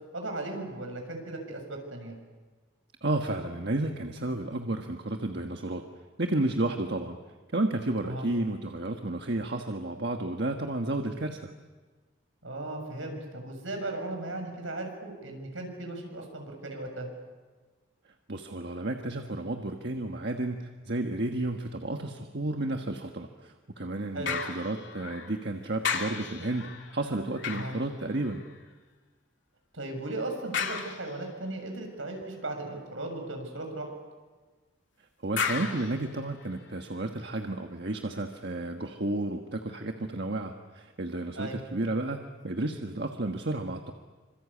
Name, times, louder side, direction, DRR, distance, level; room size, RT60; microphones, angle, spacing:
voice 1, 0.1-2.2 8.0-8.3 12.4-17.1 24.1-24.3 27.5-27.8 29.7-33.9 41.4-41.6, right 2 dB, 80° right, 3 dB, 6.9 m, -37 dB
voice 2, 3.0-5.8 6.2-7.2 7.5-11.5 18.3-28.4 35.2-43.9, right 2 dB, 55° right, 4 dB, 1.4 m, -32 dB
sound 1, 24.3-25.5 25.8-28.7 30.5-31.5 35.4-36.8 37.4-37.5, left 6 dB, 65° left, 2.6 m, -35 dB
26.5 x 26.5 x 8.6 m, 1.3 s
head